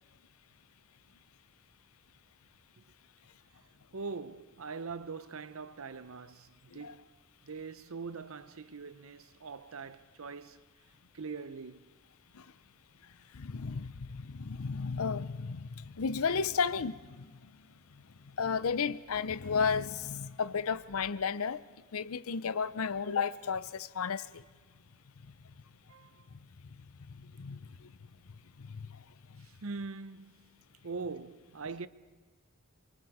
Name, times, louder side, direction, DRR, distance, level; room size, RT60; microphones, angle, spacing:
voice 1, 3.9-7.1 7.4-10.6 11.1-11.8 25.9-26.3 27.5-27.6 29.4-30.5 30.8-31.9, right 4 dB, 75° right, 0.8 m, -42 dB
voice 2, 13.3-17.5 17.9-21.6 21.9-24.4 25.2-25.3 26.6-27.9 28.6-29.0 29.3-29.5, left 5 dB, 80° left, 0.7 m, -34 dB
28.5 x 23.5 x 4.9 m
head